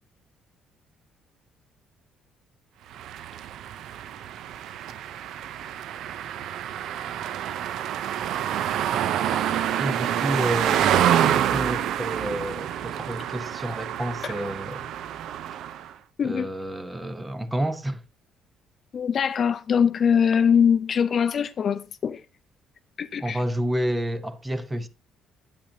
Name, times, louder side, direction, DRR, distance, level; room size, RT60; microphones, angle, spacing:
sound 1, 2.9-15.9, right 10 dB, 70° right, 0.5 m, -27 dB
voice 1, 9.8-14.9 16.2-18.0 23.2-24.9, right 1 dB, 10° right, 0.8 m, -30 dB
voice 2, 18.9-22.2 23.0-23.4, left 7 dB, 45° left, 0.5 m, -22 dB
8.7 x 8.6 x 2.7 m
cardioid pair, 120°, 0 cm